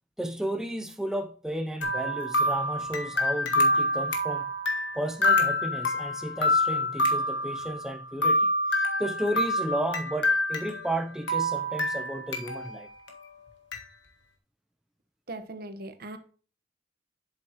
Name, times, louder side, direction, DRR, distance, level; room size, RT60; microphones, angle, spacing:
voice 1, 0.2-4.5 4.9-12.9, right 1 dB, 5° right, 0.5 m, -33 dB
sound 1, 1.8-11.0 11.3-12.7 13.1-13.2 13.7-13.8, left 1 dB, 80° left, 1.3 m, -27 dB
voice 2, 15.3-16.2, right 2 dB, 55° right, 1.1 m, -39 dB
8.0 x 7.2 x 2.9 m
head